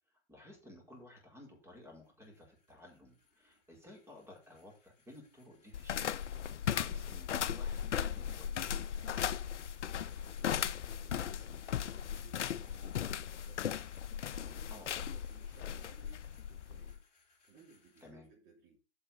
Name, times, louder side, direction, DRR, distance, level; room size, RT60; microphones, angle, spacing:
voice 1, 0.3-8.8 14.7-14.9 18.0-18.3, left 1 dB, 5° right, 1 dB, 4.7 m, -55 dB
sound 1, 0.6-18.1, left 4 dB, 20° left, 3.7 m, -66 dB
sound 2, 5.7-17.0, left 9 dB, 75° left, 0.6 m, -37 dB
voice 2, 10.2-13.9 14.1-17.0 17.4-18.8, right 5 dB, 25° right, -3 dB, 3.2 m, -62 dB
8.0 x 5.7 x 6.8 m, 0.33 s
figure-of-eight pair, 120°, 36 cm